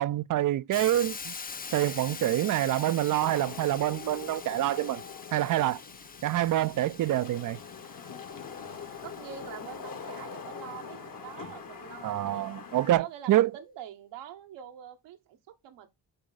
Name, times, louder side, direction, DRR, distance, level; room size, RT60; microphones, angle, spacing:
voice 1, 0.0-1.3 1.7-5.0 5.3-5.8 6.2-7.6 12.0-13.5, right 14 dB, 50° right, 0.4 m, -26 dB
Hiss, 0.7-10.6, left 5 dB, 20° left, 0.5 m, -44 dB
Wind / Rain, 1.5-13.0, left 6 dB, 50° left, 1.5 m, -44 dB
voice 2, 9.0-12.5 13.0-15.9, right 10 dB, 85° right, 1.1 m, -45 dB
6.5 x 4.0 x 3.9 m
supercardioid pair, 55°, 42 cm